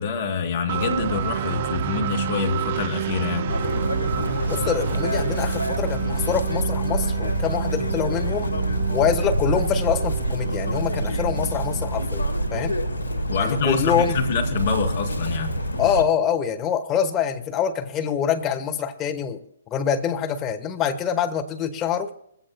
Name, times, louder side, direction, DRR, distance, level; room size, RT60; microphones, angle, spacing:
voice 1, 0.0-3.5 13.3-15.6, left 5 dB, 50° left, 2.8 m, -26 dB
sound 1, 0.7-12.5, right 11 dB, 45° right, 0.4 m, -30 dB
Chirp tweet, 3.5-16.0, right 1 dB, 85° left, 1.3 m, -26 dB
voice 2, 4.5-8.5 8.9-12.8 13.4-14.2 15.8-19.4 19.7-22.1, left 8 dB, 20° left, 1.3 m, -25 dB
21.5 x 15.5 x 2.3 m
figure-of-eight pair, 125°, 0 cm